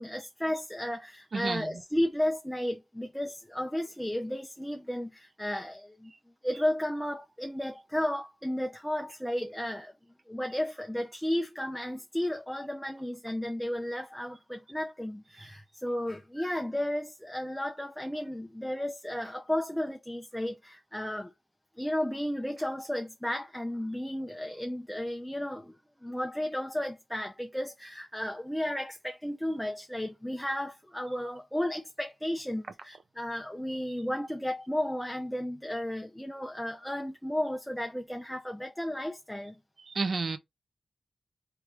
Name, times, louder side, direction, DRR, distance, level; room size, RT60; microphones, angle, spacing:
voice 1, 0.0-6.1 6.4-9.9 10.3-21.3 21.8-25.8 26.0-39.5, left 1 dB, 5° left, 0.7 m, -33 dB
voice 2, 40.0-40.4, right 4 dB, 60° right, 0.7 m, -29 dB
3.2 x 3.2 x 4.7 m
wide cardioid pair, 80°, 0 cm